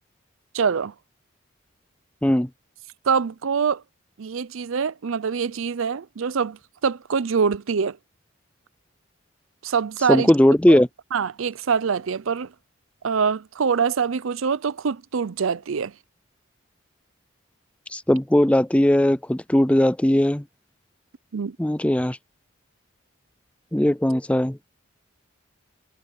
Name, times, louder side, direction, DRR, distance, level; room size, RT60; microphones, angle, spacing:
voice 1, 0.5-0.9 3.1-3.8 4.2-6.6 6.8-8.0 9.6-10.3 10.7-10.8 11.1-12.5 13.0-15.9 21.3-21.6, right 6 dB, 80° right, 0.5 m, -24 dB
voice 2, 10.1-10.9 17.9-20.4 21.6-22.2 23.7-24.6, left 1 dB, 5° left, 0.4 m, -18 dB
head